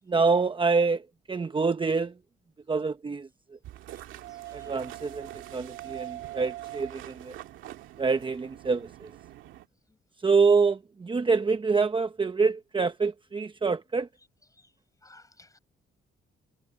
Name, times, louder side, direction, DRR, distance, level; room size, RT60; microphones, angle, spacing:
voice 1, 0.1-2.1 2.7-3.3 4.5-7.4 8.0-9.1 10.2-14.1, right 4 dB, 25° right, 1.0 m, -26 dB
sound 1, 3.6-9.7, right 14 dB, 90° right, 2.1 m, -43 dB
voice 2, 4.3-4.8 15.0-15.6, left 2 dB, 15° left, 6.9 m, -56 dB
cardioid pair, 90°, 20 cm